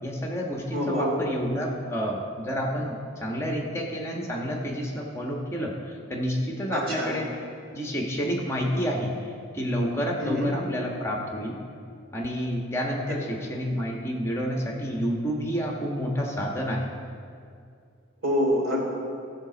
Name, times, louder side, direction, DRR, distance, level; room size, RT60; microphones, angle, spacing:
voice 1, 0.0-7.3 7.7-9.1 9.5-11.5 12.1-16.9, equal, 15° left, -1 dB, 1.3 m, -29 dB
voice 2, 0.7-1.1 6.7-7.1 10.2-10.5 18.2-18.8, equal, 90° right, -2 dB, 3.1 m, -26 dB
15.0 x 5.1 x 6.9 m, 2.3 s
head